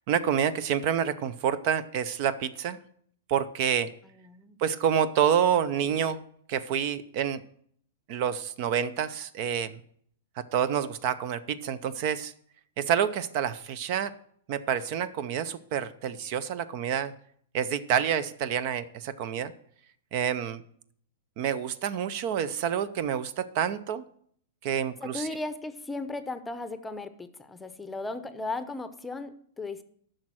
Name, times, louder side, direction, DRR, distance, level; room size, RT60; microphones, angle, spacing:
voice 1, 0.1-2.8 3.3-3.9 4.6-6.2 6.5-7.4 8.1-9.8 10.4-12.3 12.8-14.1 14.5-17.1 17.5-19.5 20.1-20.6 21.4-24.0 24.6-25.3, right 8 dB, 50° right, 15 dB, 0.6 m, -28 dB
voice 2, 4.3-4.6 25.0-29.8, left 2 dB, 10° left, 11 dB, 0.7 m, -36 dB
10.5 x 6.3 x 6.2 m, 0.63 s
hypercardioid pair, 130°, 0 cm